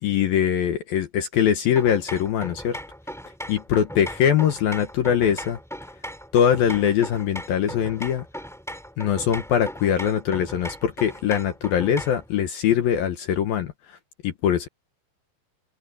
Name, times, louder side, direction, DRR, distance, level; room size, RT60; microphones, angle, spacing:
voice 1, 0.0-2.8 3.5-5.6 6.3-8.3 9.0-14.0 14.2-14.7, left 9 dB, 65° left, 2.5 m, -22 dB
sound 1, 1.8-12.3, equal, ahead, 4.3 m, -38 dB
open air
omnidirectional pair, 5.5 m